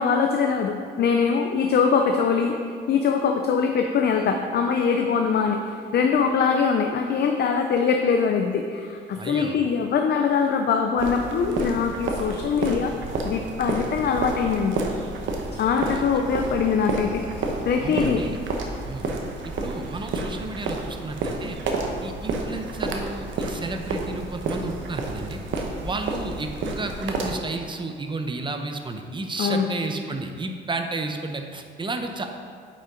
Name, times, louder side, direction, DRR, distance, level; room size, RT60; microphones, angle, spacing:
voice 1, 0.0-2.6 2.9-12.9 13.2-14.8 15.6-17.2 17.7-18.2 29.4-29.7, left 6 dB, 55° left, 4 dB, 0.5 m, -22 dB
voice 2, 9.2-9.6 15.5-16.0 17.8-18.4 18.9-19.1 19.4-21.6 22.0-25.4 25.8-32.3, right 3 dB, 25° right, 5 dB, 0.7 m, -32 dB
sound 1, 11.0-27.4, right 3 dB, 75° right, 1.0 m, -30 dB
8.3 x 5.5 x 3.9 m, 2.2 s
cardioid pair, 90°, 20 cm